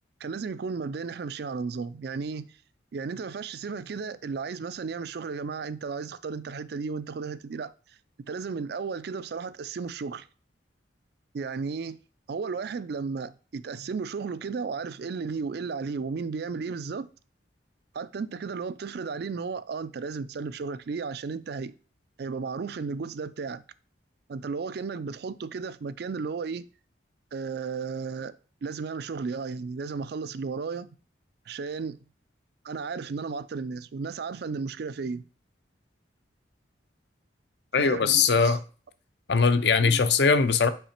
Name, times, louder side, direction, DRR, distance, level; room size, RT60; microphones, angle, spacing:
voice 1, 0.2-2.6 2.9-8.0 8.3-10.3 11.3-12.0 12.3-17.1 17.9-21.7 22.2-23.6 24.3-26.7 27.3-30.9 31.5-32.0 32.6-35.3 37.8-38.6 39.8-40.1, right 5 dB, 55° right, 0.4 m, -34 dB
voice 2, 37.7-38.6 39.3-40.7, left 5 dB, 60° left, 0.6 m, -21 dB
5.6 x 4.8 x 4.3 m
head